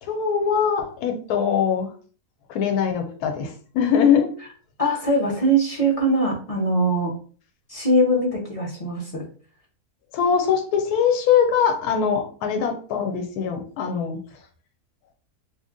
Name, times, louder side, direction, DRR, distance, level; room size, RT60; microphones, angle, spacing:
voice 1, 0.0-1.9 2.5-4.3 10.1-14.2, left 7 dB, 80° left, 4 dB, 1.1 m, -22 dB
voice 2, 4.8-7.1 7.7-9.2, right 1 dB, 35° left, -2 dB, 0.6 m, -21 dB
3.0 x 2.5 x 3.5 m, 0.42 s
omnidirectional pair, 1.6 m